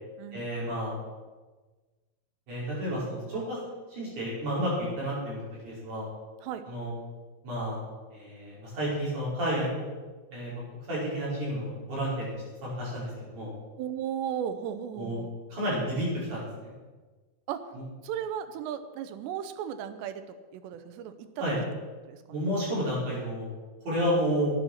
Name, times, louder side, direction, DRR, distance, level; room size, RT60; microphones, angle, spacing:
voice 1, 0.3-1.0 2.5-3.6 3.9-6.1 6.7-6.9 7.4-7.8 8.1-9.7 10.3-10.6 10.9-12.3 12.6-13.5 15.0-15.2 15.5-16.7 17.7-17.8 21.4-21.6 22.3-23.5 23.8-24.5, equal, 45° right, -7 dB, 6.8 m, -31 dB
voice 2, 13.8-15.3 17.5-17.7 18.0-21.7 22.1-22.2, right 9 dB, 80° right, 9 dB, 2.9 m, -35 dB
11.5 x 10.0 x 6.4 m, 1.3 s
omnidirectional pair, 5.1 m